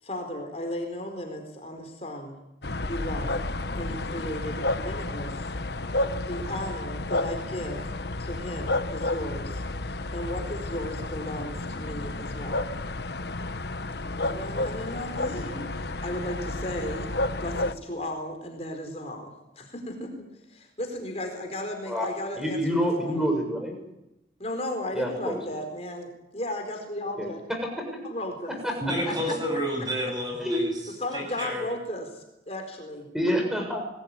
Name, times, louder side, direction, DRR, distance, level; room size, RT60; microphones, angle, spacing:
voice 1, 0.0-2.4 2.9-3.4 3.7-5.5 6.3-12.7 14.0-17.1 17.4-20.1 20.4-23.3 24.4-27.4 28.0-29.4 31.0-33.1, left 1 dB, 35° left, 4 dB, 4.3 m, -35 dB
sound 1, 2.6-17.7, left 2 dB, 65° left, 1.1 m, -31 dB
voice 2, 22.4-23.8 24.9-25.4 27.2-27.3 27.6-28.0 28.6-28.7 30.4-30.7 33.1-33.8, equal, 5° right, 3 dB, 6.7 m, -27 dB
voice 3, 28.8-30.7 31.1-31.6, equal, 20° right, 3 dB, 7.7 m, -30 dB
25.5 x 20.0 x 9.8 m, 0.92 s
head